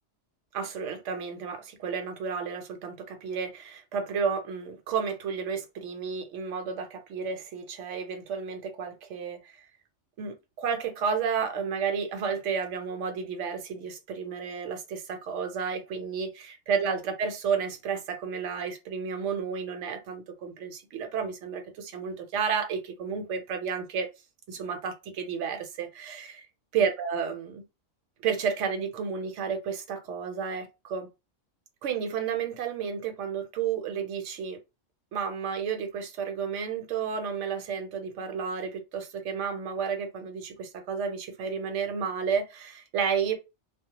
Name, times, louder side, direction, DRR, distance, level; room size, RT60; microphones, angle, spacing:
voice 1, 0.5-9.7 10.2-24.1 24.5-26.4 26.7-27.6 28.2-31.1 31.8-34.6 35.1-43.4, right 6 dB, 80° right, 1.0 m, -32 dB
2.2 x 2.0 x 2.8 m
omnidirectional pair, 1.2 m